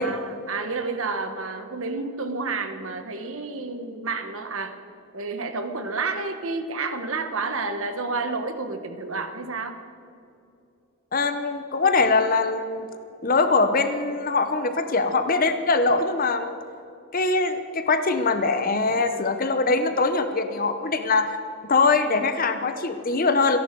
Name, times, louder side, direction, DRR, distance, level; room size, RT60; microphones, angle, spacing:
voice 1, 0.0-4.8 5.1-9.8, right 3 dB, 65° right, 7 dB, 1.3 m, -30 dB
voice 2, 11.1-12.9 13.2-16.5 17.1-21.4 21.7-23.6, left 3 dB, 40° left, 8 dB, 0.8 m, -22 dB
27.5 x 11.0 x 4.7 m, 2.6 s
head